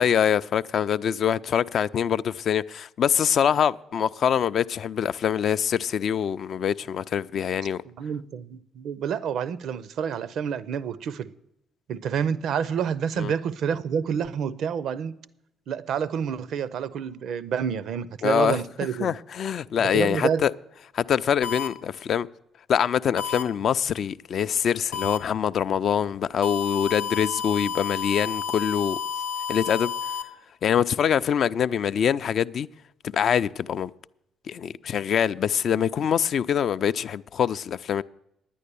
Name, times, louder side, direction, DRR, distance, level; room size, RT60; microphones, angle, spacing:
voice 1, 0.0-7.8 13.2-13.3 18.2-18.6 19.0-20.5 20.9-22.3 22.7-29.0 29.5-29.9 30.6-32.7 33.0-33.9 34.5-38.0, left 8 dB, 55° left, 0.3 m, -24 dB
voice 2, 8.0-11.3 11.9-15.1 15.7-19.2 19.8-20.5, right 7 dB, 60° right, 0.5 m, -28 dB
sound 1, 21.4-21.7 23.2-23.4 24.9-25.2 26.4-30.2, left 7 dB, 75° left, 0.7 m, -30 dB
10.0 x 9.6 x 6.8 m
hypercardioid pair, 45°, 0 cm